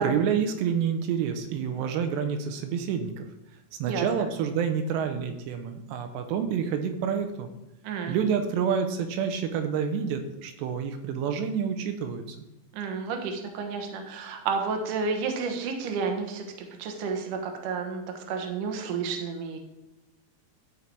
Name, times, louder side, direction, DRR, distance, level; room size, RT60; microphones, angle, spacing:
voice 1, 0.0-3.3 3.8-7.5 8.1-12.2, right 7 dB, 85° right, 7 dB, 3.0 m, -28 dB
voice 2, 7.8-8.2 12.7-16.5 16.8-19.6, right 5 dB, 65° right, 4 dB, 2.3 m, -31 dB
12.5 x 5.6 x 4.6 m, 0.96 s
omnidirectional pair, 4.9 m